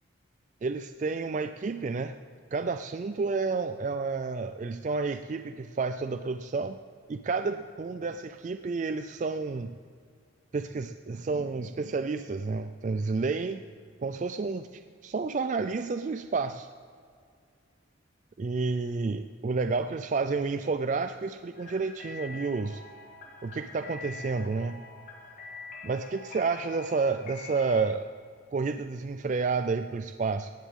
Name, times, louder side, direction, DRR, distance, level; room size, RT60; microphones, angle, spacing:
voice 1, 0.6-2.1 2.5-6.8 7.1-9.8 10.5-13.6 14.0-16.7 18.4-22.8 23.4-24.8 25.8-28.1 28.5-30.5, right 4 dB, 40° right, 9 dB, 0.3 m, -30 dB
sound 1, 21.6-27.8, left 3 dB, 40° left, 1.7 m, -45 dB
18.0 x 14.5 x 3.7 m, 2.1 s
head